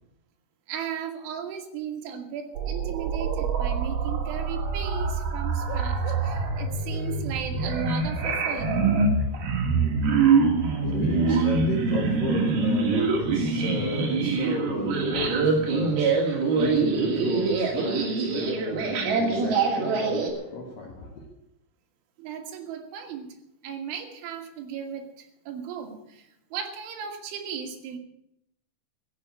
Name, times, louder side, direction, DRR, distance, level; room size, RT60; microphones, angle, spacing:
voice 1, 0.7-8.7 22.2-23.4 23.6-28.0, right 8 dB, 70° right, 3.9 m, -36 dB
Tape Malfunction, 2.6-20.3, right 4 dB, 55° right, 3.8 m, -25 dB
Bark / Livestock farm animals working animals, 5.6-6.5 6.9-7.1 8.2-9.0 9.4-9.5, left 6 dB, 75° left, 4.0 m, -40 dB
voice 2, 10.5-21.3, left 3 dB, 60° left, 2.6 m, -33 dB
15.0 x 7.9 x 9.6 m
omnidirectional pair, 5.9 m